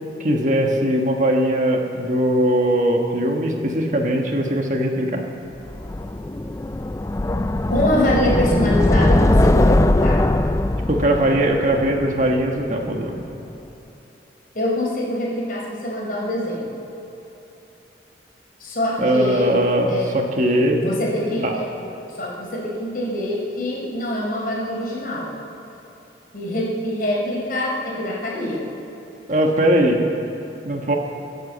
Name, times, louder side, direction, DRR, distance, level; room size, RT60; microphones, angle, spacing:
voice 1, 0.2-5.2 10.9-13.2 19.0-20.8 21.4-21.5 29.3-30.0 30.6-31.0, right 1 dB, 45° right, 2 dB, 1.5 m, -20 dB
sound 1, 5.7-12.7, left 1 dB, 15° left, 0.4 m, -20 dB
voice 2, 7.7-10.3 14.5-16.7 18.6-19.5 19.9-20.1 20.7-25.3 26.3-28.7, left 1 dB, 50° left, -3 dB, 4.4 m, -24 dB
24.0 x 8.3 x 7.4 m, 3.0 s
head